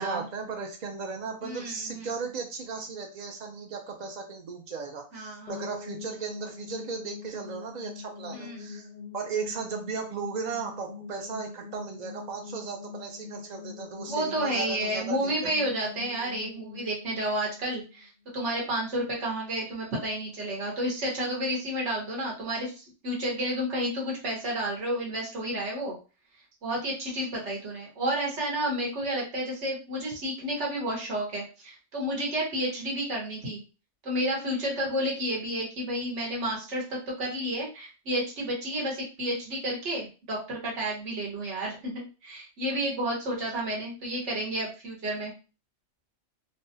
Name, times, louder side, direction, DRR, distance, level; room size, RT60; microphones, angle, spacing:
voice 1, 0.0-8.9 9.1-15.5, right 5 dB, 80° right, 3 dB, 0.4 m, -36 dB
voice 2, 1.4-2.1 5.1-5.5 8.3-8.7 14.1-26.0 26.6-33.6 34.0-45.3, right 1 dB, 60° right, -3 dB, 1.4 m, -31 dB
sound 1, 5.5-18.4, left 5 dB, 60° left, 0.4 m, -43 dB
3.3 x 2.2 x 2.7 m, 0.33 s
omnidirectional pair, 1.4 m